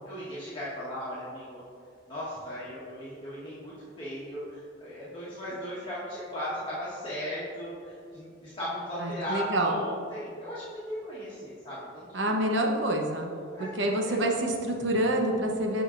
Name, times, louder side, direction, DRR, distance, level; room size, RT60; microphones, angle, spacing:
voice 1, 0.0-1.6 2.1-12.4 13.5-14.4, equal, 25° left, -10 dB, 1.4 m, -37 dB
voice 2, 9.0-9.8 12.1-13.3 13.6-15.8, right 1 dB, 75° right, 1 dB, 0.9 m, -27 dB
13.0 x 4.9 x 2.5 m, 2.4 s
head